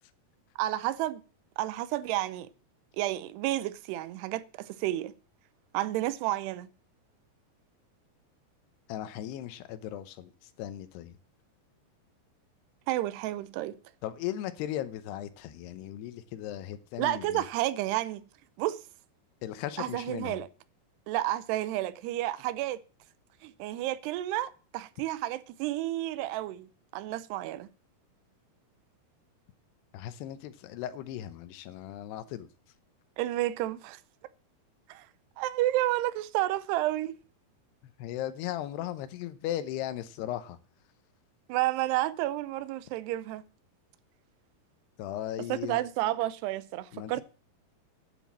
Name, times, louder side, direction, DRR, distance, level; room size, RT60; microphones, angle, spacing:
voice 1, 0.6-1.2 1.6-2.5 2.9-5.1 5.7-6.7 12.9-13.8 17.0-18.2 18.6-18.8 19.8-20.5 21.1-22.8 23.4-27.7 33.2-34.0 34.9-35.1 35.4-37.2 41.5-43.4 45.5-47.2, right 15 dB, 85° right, 2.8 m, -31 dB
voice 2, 8.9-11.2 14.0-17.4 19.4-20.4 29.9-32.5 38.0-40.6 45.0-45.8 46.9-47.2, left 12 dB, 85° left, 2.9 m, -37 dB
10.0 x 7.2 x 7.3 m
omnidirectional pair, 4.7 m